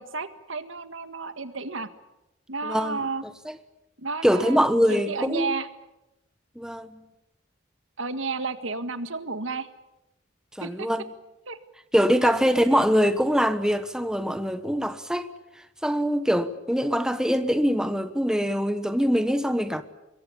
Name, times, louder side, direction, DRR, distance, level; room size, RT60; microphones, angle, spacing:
voice 1, 0.0-1.9 2.5-3.2 4.0-4.6 4.9-5.7 8.0-9.7 10.6-10.9 11.5-11.6 12.2-12.3, right 4 dB, 85° right, 1.8 m, -32 dB
voice 2, 2.6-3.0 3.4-3.5 4.2-5.6 6.6-7.0 10.6-11.0 11.9-15.3 15.8-19.8, equal, 5° right, 1.1 m, -23 dB
25.5 x 22.0 x 8.6 m
head